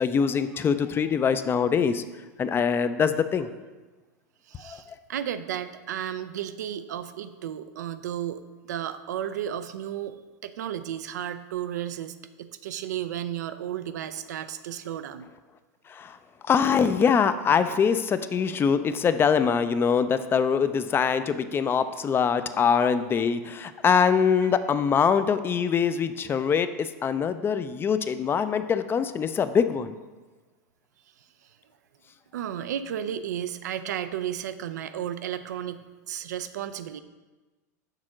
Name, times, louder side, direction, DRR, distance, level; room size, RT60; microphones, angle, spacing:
voice 1, 0.0-2.0 2.4-3.5 4.6-4.8 15.9-16.2 16.5-29.9, left 6 dB, 25° left, 11 dB, 0.4 m, -23 dB
voice 2, 4.5-8.4 8.7-10.2 10.4-15.3 24.4-24.5 32.3-37.0, right 10 dB, 85° right, 12 dB, 0.4 m, -33 dB
6.5 x 3.6 x 6.1 m, 1.3 s
hypercardioid pair, 105°, 9 cm